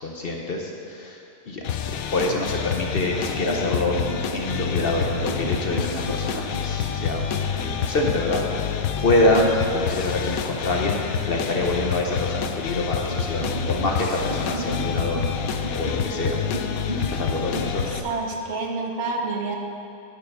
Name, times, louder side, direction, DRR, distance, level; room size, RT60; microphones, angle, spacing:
voice 1, 0.0-1.6 1.9-4.0 4.3-16.4 16.9-17.9, left 2 dB, 50° left, 0 dB, 0.8 m, -26 dB
sound 1, 1.6-18.0, left 7 dB, 80° left, 1.0 m, -28 dB
sound 2, 3.4-7.4 8.0-8.4 12.5-17.7, right 2 dB, 40° right, 0.5 m, -36 dB
voice 2, 18.0-19.6, right 3 dB, 60° right, 1 dB, 1.1 m, -28 dB
9.2 x 6.7 x 5.4 m, 2.6 s
omnidirectional pair, 1.5 m